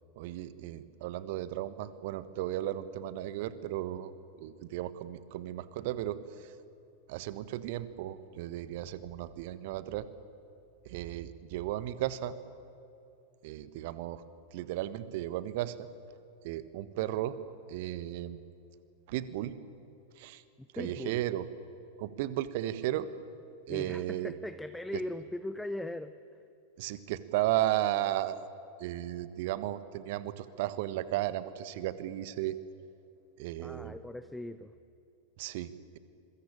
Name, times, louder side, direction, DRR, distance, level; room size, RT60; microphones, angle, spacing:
voice 1, 0.2-4.1 4.4-6.5 7.1-10.1 10.8-12.3 13.4-14.2 14.5-15.9 16.4-17.3 17.7-18.4 19.1-19.5 20.2-20.4 20.7-21.5 22.0-23.1 23.7-24.3 26.8-28.4 28.8-32.6 33.4-34.0 35.4-36.0, right 14 dB, 50° right, 14 dB, 1.4 m, -34 dB
voice 2, 20.6-21.2 23.7-26.2 33.6-34.7, left 1 dB, 5° left, 11 dB, 0.8 m, -39 dB
26.5 x 22.5 x 8.8 m, 2.7 s
figure-of-eight pair, 90°, 0 cm